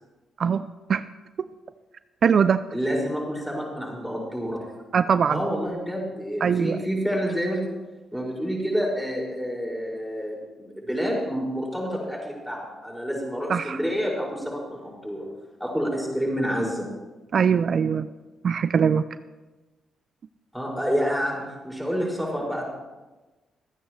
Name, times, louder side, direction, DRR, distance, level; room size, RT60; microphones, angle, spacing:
voice 1, 0.4-1.0 2.2-2.6 4.9-5.4 6.4-6.8 13.5-13.8 17.3-18.1 18.4-19.0, right 7 dB, 60° right, 13 dB, 0.4 m, -21 dB
voice 2, 2.7-4.6 5.3-7.7 8.1-15.3 15.6-16.9 20.5-22.6, equal, ahead, -3 dB, 5.8 m, -28 dB
27.0 x 9.3 x 3.2 m, 1.2 s
supercardioid pair, 65°, 0 cm